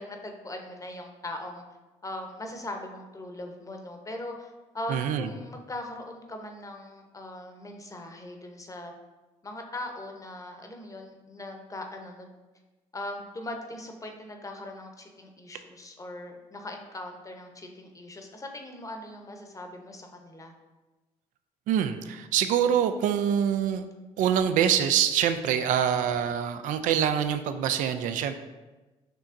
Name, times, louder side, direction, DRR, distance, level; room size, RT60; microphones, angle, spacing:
voice 1, 0.0-1.6 2.0-8.9 9.4-12.3 12.9-20.5, left 1 dB, 25° left, 3 dB, 0.8 m, -40 dB
voice 2, 4.9-5.3 21.7-23.8 24.2-28.3, right 9 dB, 70° right, 9 dB, 0.4 m, -25 dB
6.6 x 2.9 x 2.5 m, 1.2 s
supercardioid pair, 60°, 14 cm